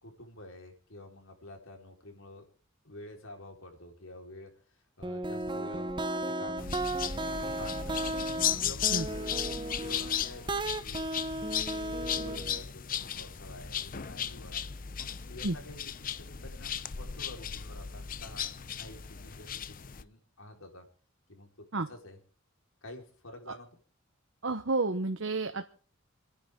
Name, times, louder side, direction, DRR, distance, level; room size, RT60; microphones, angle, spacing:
voice 1, 0.0-2.5 2.8-8.2 8.6-11.1 11.9-14.6 15.0-20.9 21.3-22.2 22.8-23.7, left 1 dB, 80° left, 3 dB, 4.3 m, -49 dB
sound 1, 5.0-12.6, right 2 dB, 25° right, 0.9 m, -35 dB
sound 2, 6.6-20.0, left 9 dB, 40° left, 0.7 m, -36 dB
voice 2, 24.4-25.7, right 3 dB, 65° right, 8 dB, 1.1 m, -30 dB
29.0 x 10.0 x 3.7 m, 0.42 s
head